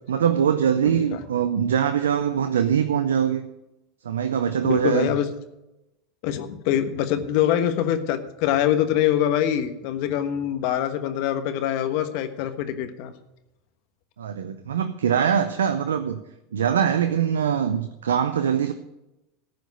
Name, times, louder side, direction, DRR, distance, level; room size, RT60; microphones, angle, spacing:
voice 1, 0.1-3.4 4.0-5.1 14.2-16.2 16.5-18.7, right 8 dB, 90° right, 9 dB, 0.6 m, -22 dB
voice 2, 0.8-1.2 4.6-5.3 6.2-13.1, left 10 dB, 60° left, 9 dB, 1.3 m, -24 dB
14.0 x 5.1 x 8.0 m, 0.91 s
hypercardioid pair, 95°, 0 cm